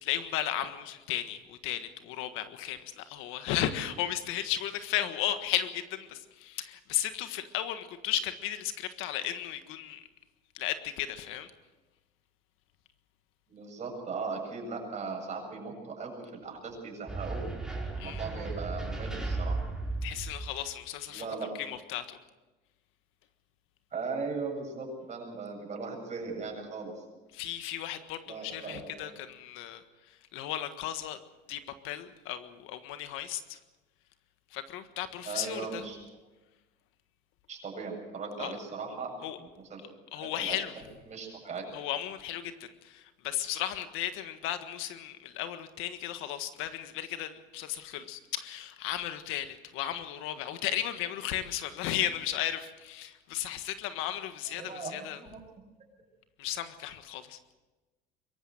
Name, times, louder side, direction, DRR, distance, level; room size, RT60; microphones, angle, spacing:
voice 1, 0.0-10.0 10.6-11.5 18.0-18.2 20.0-21.2 21.6-22.2 27.3-29.8 30.3-31.2 31.5-33.6 34.5-35.8 38.4-38.5 39.2-39.4 40.1-40.7 41.7-55.2 56.4-57.4, left 11 dB, 70° left, 10 dB, 1.6 m, -35 dB
voice 2, 13.5-17.5 17.7-19.6 21.1-21.6 23.9-27.0 28.3-29.1 35.2-36.0 37.5-39.8 40.1-40.6 41.0-41.7 54.6-55.4, right 4 dB, 35° right, 1 dB, 7.7 m, -38 dB
sound 1, 17.1-20.7, right 3 dB, 5° right, 5.6 m, -35 dB
24.0 x 14.5 x 7.8 m, 1.1 s
supercardioid pair, 110°, 21 cm